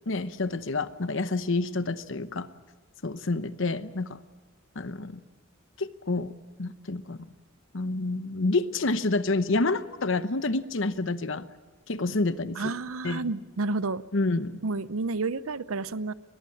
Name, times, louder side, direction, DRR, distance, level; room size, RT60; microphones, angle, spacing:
voice 1, 0.1-2.5 3.0-4.2 4.7-5.2 5.8-6.3 6.6-7.3 7.7-11.5 11.9-12.7 13.0-13.3 14.1-14.6, left 3 dB, 65° left, 13 dB, 1.0 m, -28 dB
voice 2, 12.6-14.0 14.6-16.1, right 3 dB, 85° right, 17 dB, 0.7 m, -30 dB
23.0 x 21.0 x 8.6 m, 1.3 s
head